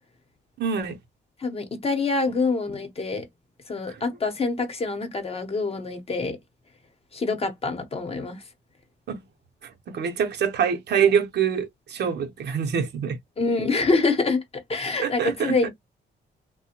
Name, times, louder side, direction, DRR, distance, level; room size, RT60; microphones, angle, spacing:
voice 1, 0.6-1.0 3.9-4.0 9.1-9.2 9.6-13.2 15.0-15.7, right 7 dB, 60° right, 0.7 m, -25 dB
voice 2, 1.4-3.2 3.7-6.4 7.1-8.4 13.4-14.4 14.7-15.7, left 3 dB, 30° left, 0.8 m, -25 dB
3.3 x 2.1 x 2.8 m
wide cardioid pair, 145°, 19 cm